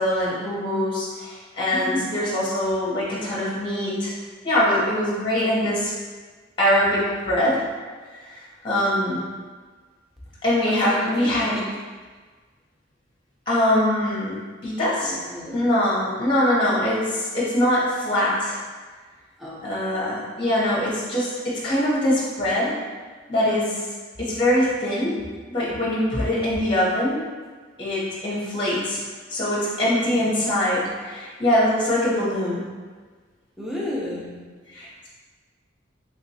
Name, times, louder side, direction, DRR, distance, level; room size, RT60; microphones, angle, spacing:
voice 1, 0.0-4.1 4.4-5.9 6.6-7.6 8.3-9.2 10.4-11.6 13.5-15.1 15.5-18.6 19.6-22.8 23.3-23.8 24.2-25.2 25.5-27.3 27.8-29.0 29.3-32.7 34.7-35.1, left 1 dB, 25° left, -7 dB, 0.8 m, -23 dB
voice 2, 1.7-2.1 10.6-11.3 15.0-15.6 19.4-19.6 29.8-30.3 33.6-34.4, left 1 dB, ahead, -7 dB, 0.6 m, -32 dB
3.3 x 2.9 x 2.7 m, 1.4 s
head